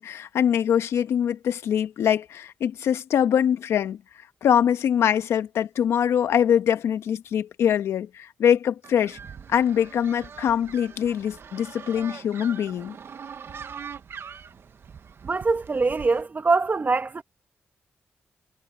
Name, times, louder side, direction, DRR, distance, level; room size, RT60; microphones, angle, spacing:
voice 1, 0.0-4.0 4.4-9.2 9.5-12.9, left 9 dB, 85° left, 1.3 m, -23 dB
sound 1, 8.8-16.2, right 6 dB, 65° right, 1.5 m, -42 dB
voice 2, 15.2-17.2, right 3 dB, 40° right, 1.5 m, -23 dB
cardioid pair, 55°, 4 cm